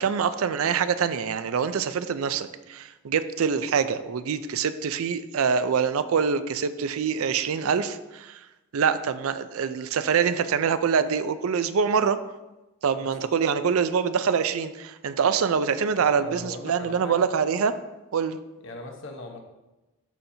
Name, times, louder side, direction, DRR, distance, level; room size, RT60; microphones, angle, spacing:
voice 1, 0.0-8.4 8.7-12.2 12.8-17.7 18.1-18.4, right 6 dB, 75° right, 12 dB, 0.4 m, -25 dB
voice 2, 13.0-13.3 16.0-17.2 18.6-19.4, left 2 dB, 60° left, 3 dB, 1.0 m, -40 dB
12.0 x 4.3 x 2.7 m, 1.0 s
head